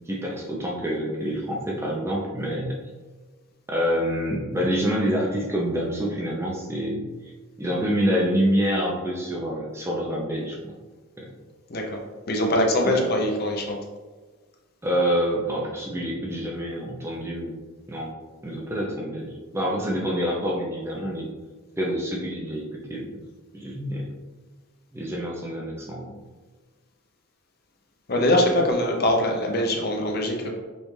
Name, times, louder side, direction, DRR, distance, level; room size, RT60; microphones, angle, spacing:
voice 1, 0.1-2.8 3.7-7.0 7.6-10.7 11.2-11.3 12.8-13.0 14.8-17.6 17.9-18.1 18.4-21.3 21.8-23.2 23.5-24.1 24.9-26.2, equal, 10° right, -3 dB, 0.5 m, -27 dB
voice 2, 11.7-12.0 12.3-13.8 28.1-30.5, left 1 dB, 45° left, 1 dB, 0.6 m, -23 dB
5.2 x 2.4 x 3.1 m, 1.4 s
head